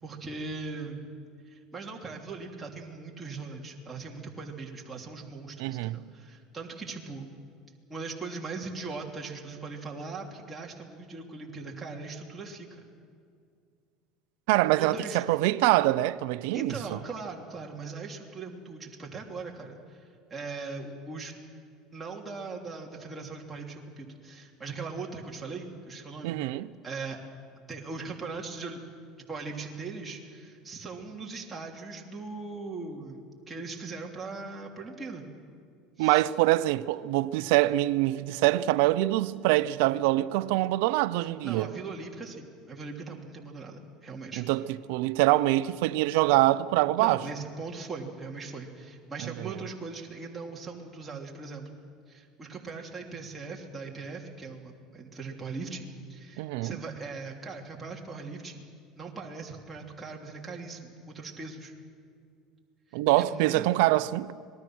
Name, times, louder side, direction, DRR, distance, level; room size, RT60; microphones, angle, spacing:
voice 1, 0.0-1.1 1.4-7.3 7.9-12.8 14.8-15.2 16.5-21.3 21.9-27.2 27.7-28.8 29.3-35.2 36.0-36.2 41.2-44.4 47.0-51.8 52.1-58.6 58.9-61.7 62.9-63.7, right 4 dB, 20° right, 3.1 m, -40 dB
voice 2, 5.6-6.0 14.5-17.0 26.2-26.7 36.0-41.7 44.4-47.2 49.2-49.3 56.4-56.7 62.9-64.3, right 17 dB, 75° right, 0.6 m, -24 dB
26.0 x 19.5 x 6.3 m
supercardioid pair, 105°, 0 cm